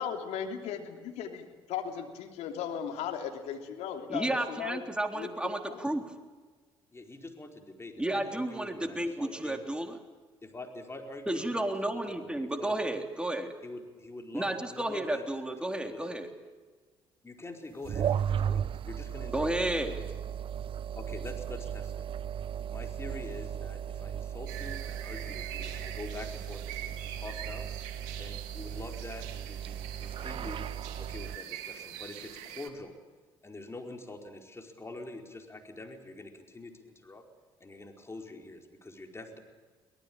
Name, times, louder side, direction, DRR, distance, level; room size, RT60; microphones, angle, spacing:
voice 1, 0.0-4.8 5.1-5.9, left 8 dB, 70° left, 4 dB, 3.1 m, -37 dB
voice 2, 4.1-6.0 8.0-9.9 11.3-13.5 14.3-16.3 19.3-20.0, right 1 dB, 10° right, 4 dB, 3.7 m, -32 dB
voice 3, 6.9-9.6 10.4-13.0 13.6-15.2 15.6-16.0 17.2-20.0 21.0-22.0 22.7-27.7 28.1-30.6 31.0-32.9 33.4-37.2 37.6-39.4, left 2 dB, 20° left, 3 dB, 4.7 m, -45 dB
sound 1, 17.8-31.4, right 9 dB, 50° right, 0.6 m, -36 dB
sound 2, 24.5-32.7, right 10 dB, 75° right, 2.1 m, -44 dB
23.5 x 18.5 x 8.8 m, 1.4 s
hypercardioid pair, 55°, 12 cm